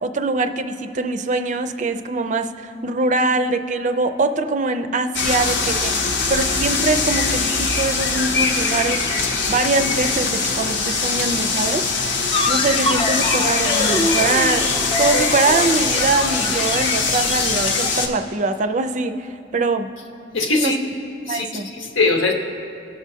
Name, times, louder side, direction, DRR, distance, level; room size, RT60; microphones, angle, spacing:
voice 1, 0.0-9.0 9.5-11.9 12.5-19.9 20.6-20.7 21.3-21.7, right 3 dB, 40° right, 9 dB, 0.4 m, -23 dB
sound 1, 5.1-18.1, left 4 dB, 65° left, 0.8 m, -22 dB
sound 2, 12.3-17.9, left 2 dB, 25° left, 0.4 m, -25 dB
voice 2, 20.3-20.8 21.3-22.3, left 3 dB, 85° left, 3 dB, 1.0 m, -21 dB
18.5 x 6.2 x 2.7 m, 2.8 s
head